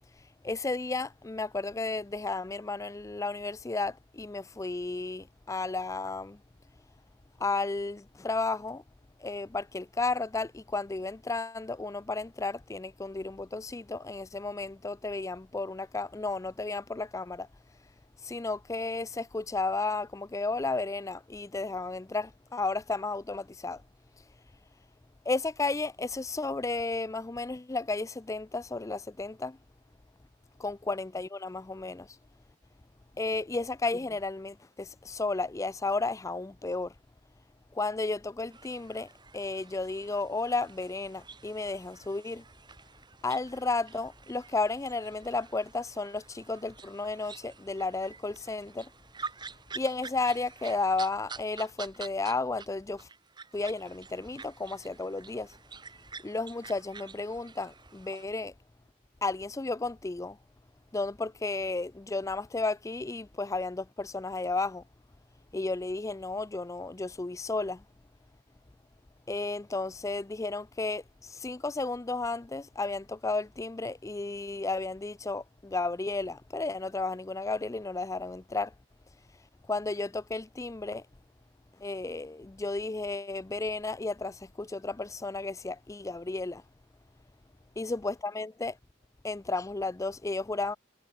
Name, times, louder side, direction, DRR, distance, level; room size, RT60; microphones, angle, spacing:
voice 1, 0.4-6.4 7.4-8.8 9.2-17.5 18.2-23.8 25.3-29.6 30.6-32.2 33.2-36.9 37.7-42.4 43.2-48.9 49.7-53.1 53.5-55.6 56.2-58.5 59.2-60.4 60.9-64.8 65.5-67.8 69.3-78.7 79.7-81.1 81.8-86.6 87.8-88.8 89.2-90.8, left 3 dB, 15° left, 0.4 m, -33 dB
sound 1, 38.5-52.7 53.0-58.3, right 5 dB, 20° right, 1.1 m, -48 dB
head